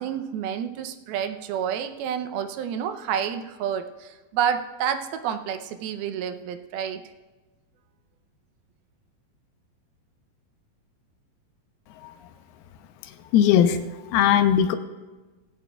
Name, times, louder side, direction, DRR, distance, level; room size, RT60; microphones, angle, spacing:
voice 1, 0.0-7.0, right 8 dB, 80° right, 8 dB, 2.5 m, -29 dB
voice 2, 13.3-13.8 14.1-14.8, left 9 dB, 85° left, 9 dB, 2.6 m, -18 dB
19.0 x 14.5 x 2.3 m, 1.2 s
omnidirectional pair, 4.4 m